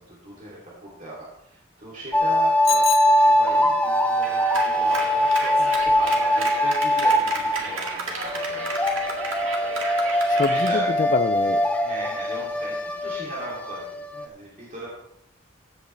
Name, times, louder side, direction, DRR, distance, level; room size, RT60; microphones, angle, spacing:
voice 1, 0.1-8.7 10.2-10.9 11.4-13.8 14.1-14.9, right 2 dB, 40° right, -6 dB, 2.8 m, -38 dB
sound 1, 2.1-8.0 8.2-14.3, equal, 5° left, 0.7 m, -22 dB
Bicycle bell, 2.6-3.9, left 13 dB, 85° left, 0.7 m, -30 dB
Clapping, 4.2-10.8, right 3 dB, 90° right, 1.9 m, -32 dB
voice 2, 10.3-11.6, left 4 dB, 40° left, 9 dB, 0.4 m, -25 dB
14.5 x 8.2 x 3.3 m, 0.79 s
head